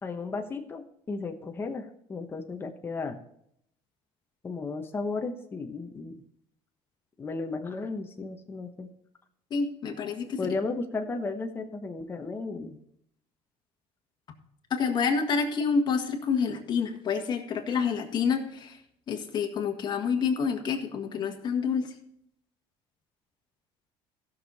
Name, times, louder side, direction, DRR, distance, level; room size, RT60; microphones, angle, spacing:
voice 1, 0.0-3.2 4.4-6.2 7.2-8.9 10.4-12.8, left 3 dB, 20° left, 4 dB, 1.0 m, -34 dB
voice 2, 9.5-10.5 14.7-18.7 19.1-21.9, left 5 dB, 40° left, 3 dB, 1.7 m, -28 dB
15.5 x 6.6 x 4.1 m, 0.73 s
cardioid pair, 135°, 11 cm